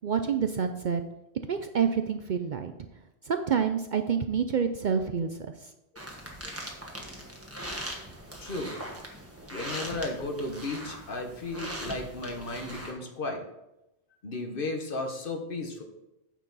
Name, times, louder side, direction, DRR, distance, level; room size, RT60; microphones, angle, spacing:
voice 1, 0.0-1.0 1.5-2.7 3.2-5.3, right 7 dB, 55° right, 7 dB, 0.6 m, -27 dB
sound 1, 6.0-12.9, right 1 dB, 15° right, 1.4 m, -40 dB
voice 2, 8.4-8.7 9.5-13.4 14.2-15.8, left 2 dB, 55° left, 4 dB, 1.3 m, -34 dB
9.0 x 6.8 x 4.0 m, 0.92 s
omnidirectional pair, 1.1 m